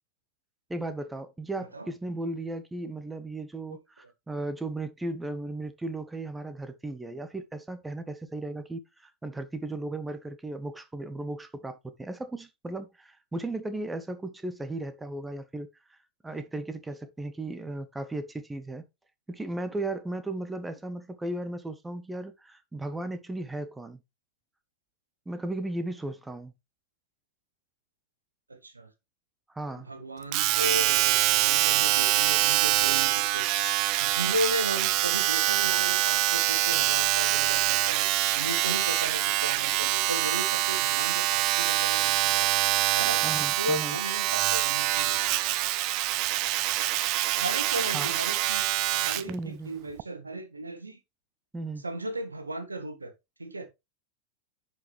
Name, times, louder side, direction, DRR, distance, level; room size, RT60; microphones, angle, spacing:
voice 1, 0.7-16.0 16.2-18.8 19.3-24.0 25.3-26.5 29.5-29.9 43.2-44.0 47.9-48.1 49.3-49.9 51.5-51.8, right 2 dB, 10° right, 1.0 m, -36 dB
voice 2, 1.6-1.9 16.3-16.4 28.5-28.9 29.8-33.5 34.0-38.0 38.3-42.5 42.9-43.3 43.6-45.2 47.3-51.0 51.8-53.1 53.4-53.7, right 1 dB, 80° right, 1.6 m, -35 dB
Domestic sounds home sounds, 30.3-49.3 50.0-50.1, right 16 dB, 40° right, 0.6 m, -25 dB
11.0 x 5.1 x 3.4 m
figure-of-eight pair, 90°, 0 cm